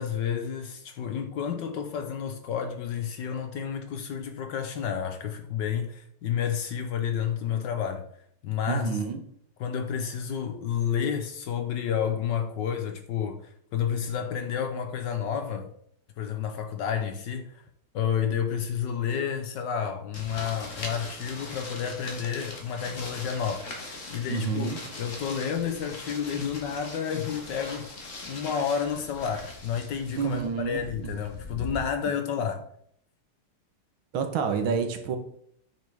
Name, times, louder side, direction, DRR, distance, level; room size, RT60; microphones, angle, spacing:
voice 1, 0.0-8.0 8.4-8.9 9.6-15.7 16.2-17.6 17.9-24.7 25.0-30.4 30.7-32.7, left 7 dB, 65° left, 1.2 m, -30 dB
voice 2, 8.7-9.2 24.3-24.8 30.2-31.2 34.1-35.2, right 6 dB, 70° right, 1.8 m, -29 dB
sound 1, 20.1-31.8, left 2 dB, 40° left, 1.7 m, -41 dB
8.8 x 6.4 x 3.5 m
omnidirectional pair, 2.4 m